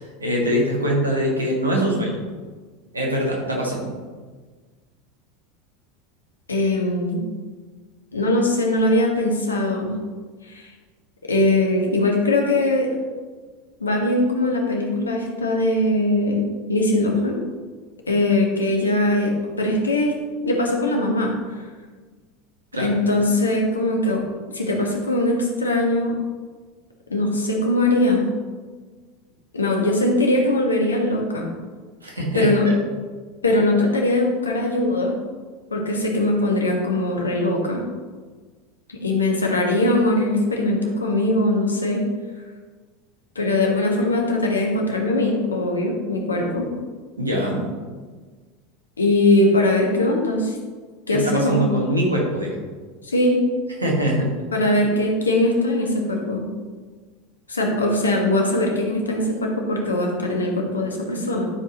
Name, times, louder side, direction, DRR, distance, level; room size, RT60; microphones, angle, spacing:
voice 1, 0.2-2.2 2.9-3.9 22.7-22.9 32.0-32.5 47.2-47.6 51.1-52.6 53.8-54.3 54.6-54.7, equal, 85° right, -2 dB, 1.8 m, -23 dB
voice 2, 6.5-7.2 8.1-9.9 10.5-10.7 11.2-12.9 13.8-17.4 18.1-20.1 20.4-21.6 22.8-24.2 24.5-26.1 27.1-28.3 29.5-31.5 32.3-32.7 33.4-35.2 35.7-37.8 38.9-42.0 43.3-46.7 49.0-50.6 51.1-51.6 53.0-53.4 54.5-56.4 57.5-61.5, left 1 dB, 85° left, 1 dB, 1.4 m, -21 dB
12.0 x 5.1 x 3.0 m, 1.4 s
figure-of-eight pair, 80°, 0 cm